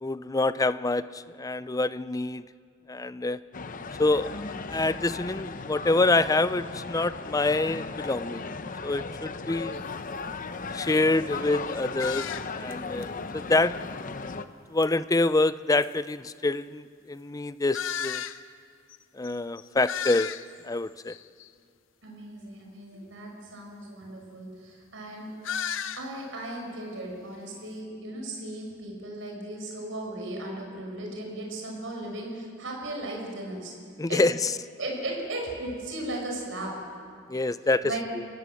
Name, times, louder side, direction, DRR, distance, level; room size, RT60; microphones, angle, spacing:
voice 1, 0.0-2.4 2.9-3.4 4.0-8.6 8.8-9.8 10.7-12.3 12.5-13.8 14.7-18.2 19.2-20.3 20.6-21.1 34.0-34.5 37.3-37.9, left 2 dB, 15° left, 14 dB, 0.5 m, -26 dB
sound 1, 3.5-14.5, left 4 dB, 45° left, 0.8 m, -36 dB
sound 2, 9.7-9.9 10.4-10.5 10.8-11.1 12.0-12.7 13.0-13.1 14.8-14.9 15.8-15.9 17.7-18.4 18.9-19.0 19.2-19.3 19.6-20.7 21.1-21.5 25.4-26.1, left 8 dB, 70° left, 0.8 m, -34 dB
voice 2, 22.0-25.3 26.0-33.7 34.1-34.2 34.8-36.8 37.8-38.0, right 1 dB, 75° right, 0 dB, 6.0 m, -36 dB
29.0 x 16.5 x 7.6 m, 2.2 s
head